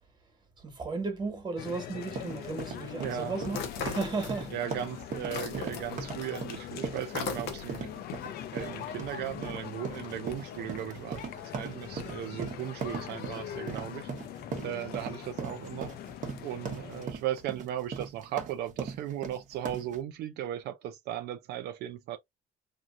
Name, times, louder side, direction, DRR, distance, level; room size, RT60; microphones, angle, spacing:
voice 1, 0.6-4.6, right 4 dB, 25° right, 1.5 m, -35 dB
sound 1, 1.6-17.1, left 11 dB, 70° left, 0.6 m, -42 dB
sound 2, 1.9-20.0, right 5 dB, 50° right, 1.0 m, -39 dB
voice 2, 2.9-3.3 4.5-7.9 8.5-14.1 14.6-15.9 16.4-22.2, right 11 dB, 75° right, 0.5 m, -37 dB
sound 3, 3.5-4.7 5.0-8.0, left 6 dB, 85° left, 1.0 m, -38 dB
3.0 x 2.5 x 2.5 m
cardioid pair, 110°, 17 cm